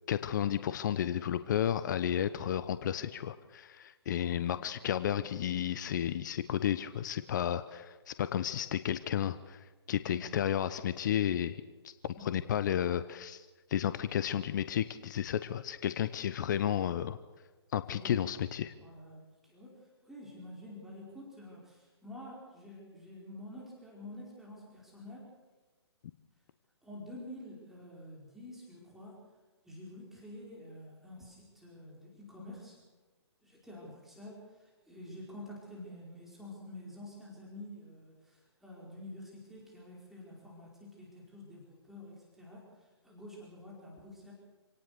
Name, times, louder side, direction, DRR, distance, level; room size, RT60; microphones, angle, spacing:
voice 1, 0.1-17.2 17.7-18.7, left 10 dB, 40° left, 13 dB, 0.9 m, -32 dB
voice 2, 4.2-4.5 10.1-10.3 12.2-12.4 17.9-18.1 18.8-25.3 26.8-29.2 29.6-32.8 33.4-44.3, left 1 dB, ahead, -5 dB, 4.9 m, -49 dB
27.5 x 18.0 x 6.7 m, 1.3 s
figure-of-eight pair, 135°, 15 cm